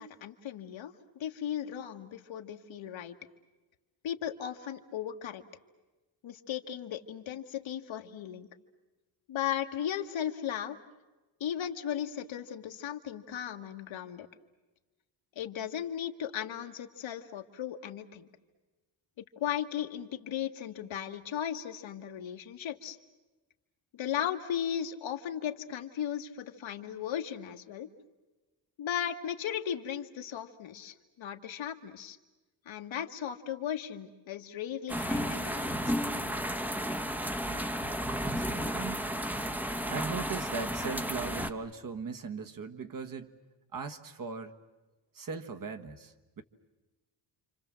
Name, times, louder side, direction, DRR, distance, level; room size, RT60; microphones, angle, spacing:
voice 1, 0.0-3.2 4.0-5.4 6.2-8.5 9.3-10.8 11.4-14.3 15.4-18.3 19.2-23.0 23.9-27.9 28.8-32.2 32.7-36.0, left 9 dB, 75° left, 5 dB, 1.7 m, -36 dB
sound 1, 34.9-41.5, equal, 5° right, 0.9 m, -33 dB
voice 2, 37.5-37.8 38.2-39.1 39.9-43.3 43.7-44.5 45.1-46.4, right 5 dB, 45° right, 6 dB, 1.5 m, -39 dB
29.0 x 26.0 x 7.6 m, 1.2 s
cardioid pair, 125°, 47 cm